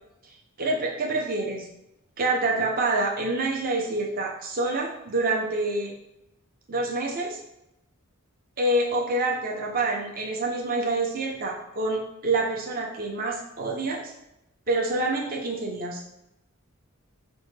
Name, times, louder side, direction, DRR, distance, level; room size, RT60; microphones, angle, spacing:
voice 1, 0.6-1.7 2.2-5.9 6.7-7.4 8.6-14.1 14.7-16.0, right 2 dB, 40° right, 0 dB, 0.6 m, -27 dB
5.3 x 2.1 x 3.1 m, 0.85 s
head